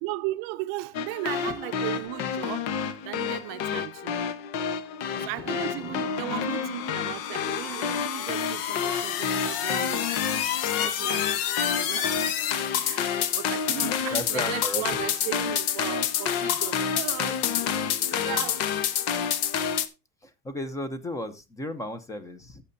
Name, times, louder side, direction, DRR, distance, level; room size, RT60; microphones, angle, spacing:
voice 1, 0.0-2.7 3.0-4.2 5.2-10.1 10.8-17.4 18.1-18.6 19.1-19.2, right 18 dB, 50° right, 0.6 m, -36 dB
sound 1, 0.9-19.9, left 8 dB, 70° left, 1.2 m, -28 dB
voice 2, 5.1-5.5 5.8-6.0 13.2-13.3 14.1-14.8 17.5-18.5 20.2-22.6, left 1 dB, 10° left, 0.8 m, -36 dB
13.5 x 6.8 x 2.7 m
cardioid pair, 165°, 29 cm